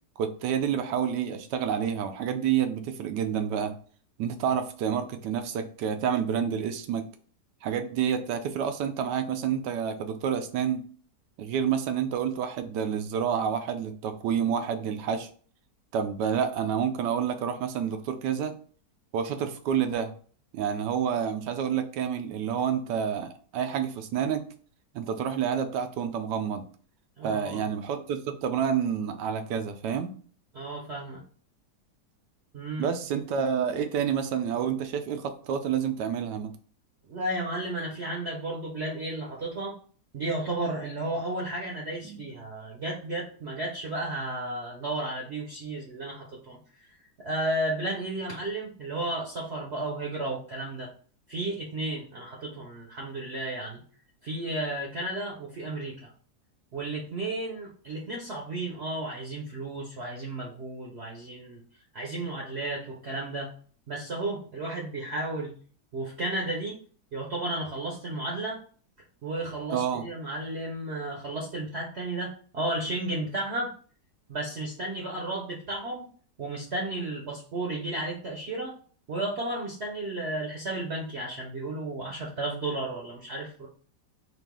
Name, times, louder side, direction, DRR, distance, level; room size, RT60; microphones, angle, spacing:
voice 1, 0.2-3.7 4.2-7.1 7.6-10.9 11.4-15.3 15.9-18.6 19.1-20.1 20.5-24.5 24.9-26.7 27.2-30.1 32.8-36.5 42.0-42.2 69.7-70.1, right 8 dB, 85° right, 8 dB, 1.2 m, -29 dB
voice 2, 27.2-27.6 30.5-31.2 32.5-32.9 37.1-39.8 40.1-46.6 47.2-50.9 51.3-53.8 54.2-56.1 56.7-61.6 61.9-63.5 63.9-65.5 65.9-66.8 67.1-68.6 69.2-73.7 74.3-76.1 76.4-78.7 79.1-83.7, right 2 dB, 50° right, -2 dB, 0.8 m, -33 dB
4.2 x 2.5 x 3.6 m, 0.44 s
omnidirectional pair, 1.8 m